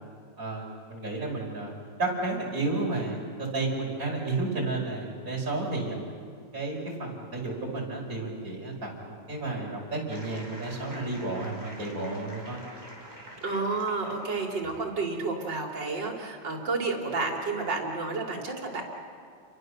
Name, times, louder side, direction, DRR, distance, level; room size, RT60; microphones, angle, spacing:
voice 1, 0.4-1.7 2.0-6.0 6.5-12.6, right 2 dB, 45° right, -2 dB, 5.8 m, -32 dB
sound 1, 10.1-14.8, right 1 dB, 10° right, 5.2 m, -46 dB
voice 2, 13.4-18.8, right 3 dB, 65° right, 1 dB, 3.9 m, -30 dB
30.0 x 23.0 x 6.7 m, 2.2 s
omnidirectional pair, 2.1 m